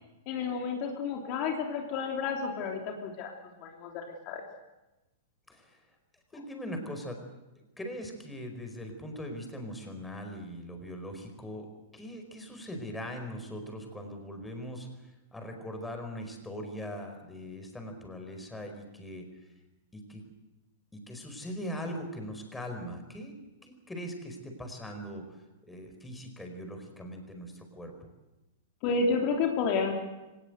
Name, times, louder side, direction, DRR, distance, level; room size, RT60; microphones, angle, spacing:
voice 1, 0.3-4.4 28.8-29.9, left 4 dB, 40° left, 1 dB, 3.2 m, -31 dB
voice 2, 5.5-5.8 6.3-7.2 7.6-14.9 15.3-19.3 19.9-20.2 20.9-23.3 23.6-25.4 25.7-28.1, equal, 5° left, 4 dB, 5.0 m, -41 dB
25.0 x 18.5 x 8.1 m, 1.1 s
figure-of-eight pair, 100°, 0 cm